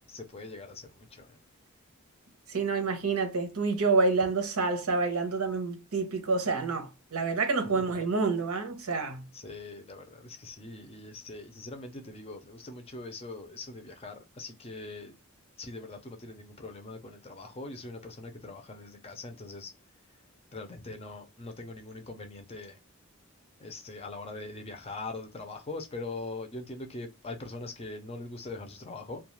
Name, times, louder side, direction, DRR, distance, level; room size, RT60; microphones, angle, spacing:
voice 1, 0.1-1.4 7.8-8.1 9.3-15.2 15.6-19.7 20.5-22.8 23.6-29.2, left 2 dB, 25° left, 0.5 m, -42 dB
voice 2, 2.5-9.2, right 4 dB, 80° right, 0.8 m, -28 dB
2.3 x 2.3 x 3.0 m
head